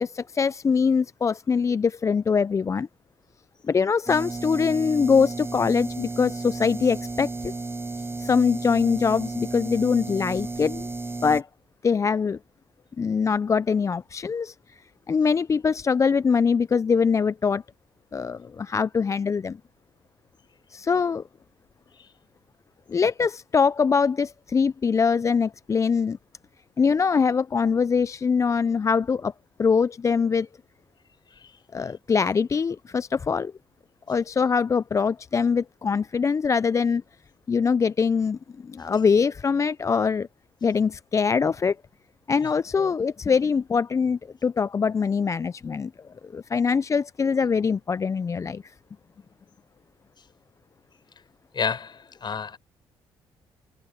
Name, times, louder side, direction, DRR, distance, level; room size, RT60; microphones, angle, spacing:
voice 1, 0.0-2.9 3.7-7.5 8.2-10.9 11.2-11.5 11.8-12.4 13.0-14.8 15.1-17.6 18.1-19.6 20.7-21.2 22.9-26.2 26.8-29.3 29.6-30.5 31.7-33.5 34.1-37.0 37.5-40.3 40.6-41.8 42.3-45.9 46.2-48.7, left 5 dB, 30° left, 0.3 m, -23 dB
sound 1, 4.1-11.4, right 3 dB, 25° right, 4.0 m, -33 dB
voice 2, 51.5-52.6, left 6 dB, 45° left, 4.9 m, -30 dB
supercardioid pair, 70°, 10 cm